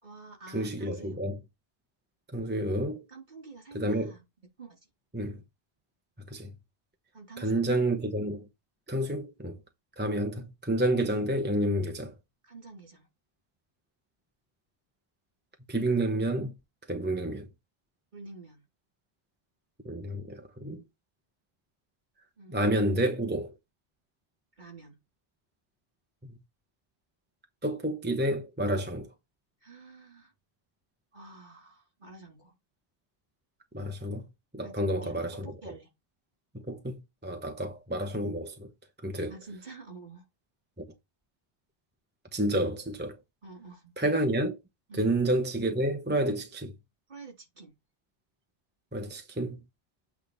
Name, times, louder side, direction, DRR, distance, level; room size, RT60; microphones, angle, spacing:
voice 1, 0.0-1.2 3.1-4.2 4.6-4.8 7.1-7.6 12.4-13.1 18.1-18.6 22.4-22.6 24.6-25.0 29.6-30.3 31.1-32.5 34.6-35.9 39.3-40.3 43.4-43.9 44.9-45.1 47.1-47.7, right 3 dB, 45° right, 3.3 m, -48 dB
voice 2, 0.5-1.4 2.3-3.1 3.7-4.2 5.1-5.4 6.3-6.5 7.4-8.5 8.9-9.6 10.0-12.1 15.7-16.5 16.9-17.5 19.8-20.8 22.5-23.6 26.2-26.4 27.6-29.1 33.7-34.3 34.5-35.7 36.5-38.7 39.0-39.3 40.8-40.9 42.3-43.2 44.0-44.6 44.9-46.8 48.9-49.6, right 1 dB, 10° right, 0.8 m, -29 dB
8.6 x 3.4 x 5.4 m
omnidirectional pair, 1.1 m